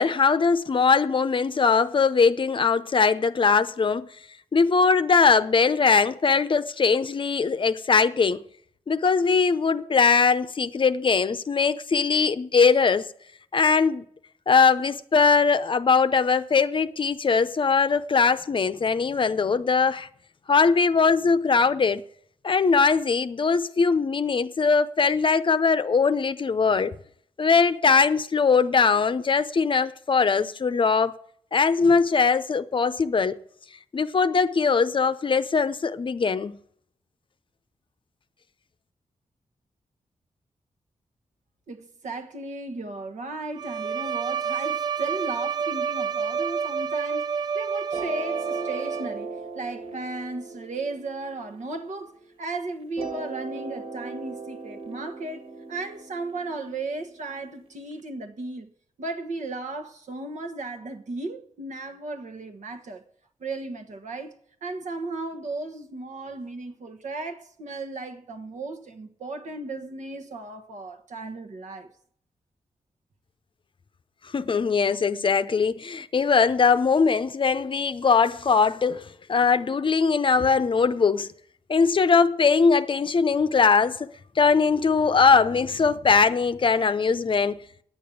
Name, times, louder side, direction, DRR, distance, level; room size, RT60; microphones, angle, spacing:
voice 1, 0.0-4.1 4.5-8.4 8.9-13.1 13.5-14.0 14.5-20.1 20.5-22.0 22.4-26.9 27.4-31.1 31.5-33.4 33.9-36.5 74.3-81.3 81.7-84.1 84.4-87.6, left 5 dB, 40° left, 0.6 m, -21 dB
voice 2, 41.7-58.7 59.0-63.0 63.4-71.9, right 2 dB, 75° right, 1.3 m, -35 dB
Bowed string instrument, 43.6-49.4, right 6 dB, 35° right, 0.5 m, -29 dB
sound 1, 47.9-52.3 53.0-57.9, right 4 dB, 50° right, 1.8 m, -38 dB
10.0 x 8.6 x 8.5 m
wide cardioid pair, 115°, 13 cm